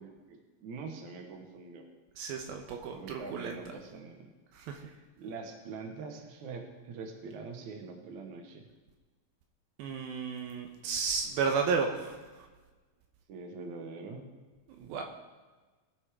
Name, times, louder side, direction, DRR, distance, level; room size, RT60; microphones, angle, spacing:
voice 1, 0.0-1.9 2.9-4.3 4.8-8.7 13.3-14.2 14.8-15.0, right 4 dB, 60° right, 3 dB, 2.6 m, -44 dB
voice 2, 2.2-3.6 4.5-4.8 9.8-12.2 14.8-15.0, right 5 dB, 80° right, 3 dB, 2.7 m, -33 dB
20.5 x 8.2 x 3.7 m, 1.3 s
omnidirectional pair, 4.3 m